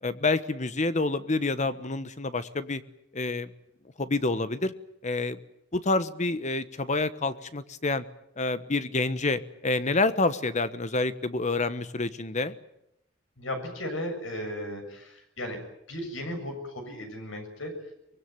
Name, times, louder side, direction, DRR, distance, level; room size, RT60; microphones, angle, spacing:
voice 1, 0.0-2.8 3.1-3.5 4.0-4.7 5.0-5.4 5.7-8.0 8.4-12.5, left 3 dB, 40° left, 13 dB, 1.2 m, -28 dB
voice 2, 13.4-15.6 15.9-17.7, left 1 dB, 80° left, 5 dB, 7.0 m, -35 dB
24.0 x 21.0 x 9.4 m, 0.79 s
head